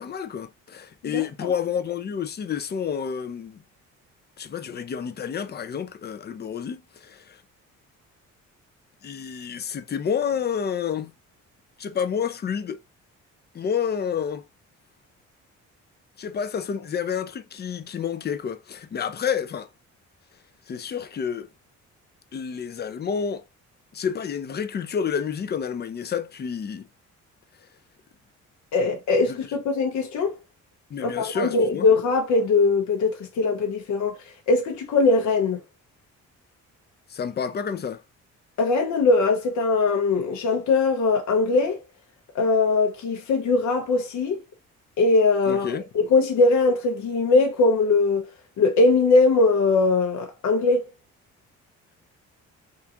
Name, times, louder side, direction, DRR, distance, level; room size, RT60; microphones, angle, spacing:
voice 1, 0.0-3.6 4.4-7.4 9.0-11.1 11.8-12.8 13.5-14.4 16.2-19.7 20.7-21.5 22.3-23.4 23.9-26.9 28.8-29.0 29.3-29.4 30.9-31.9 37.1-38.0 45.5-45.8, left 7 dB, 35° left, 0.5 m, -29 dB
voice 2, 1.0-1.5 28.7-30.4 31.0-34.2 34.5-35.6 38.6-41.8 42.3-44.4 45.0-48.3 48.6-50.8, left 3 dB, 70° left, 0.9 m, -21 dB
3.7 x 2.4 x 2.8 m
cardioid pair, 90°, 30 cm